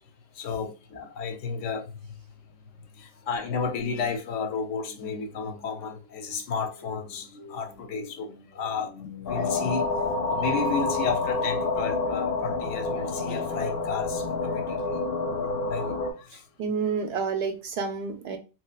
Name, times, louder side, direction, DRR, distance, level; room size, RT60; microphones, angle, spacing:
voice 1, 0.3-2.1 2.9-15.0 15.7-16.5, left 5 dB, 90° left, 1.0 m, -33 dB
sound 1, 9.3-16.1, left 3 dB, 60° left, 0.7 m, -28 dB
voice 2, 15.3-15.6 16.6-18.4, right 5 dB, 65° right, 0.7 m, -30 dB
3.0 x 2.9 x 2.2 m
omnidirectional pair, 1.2 m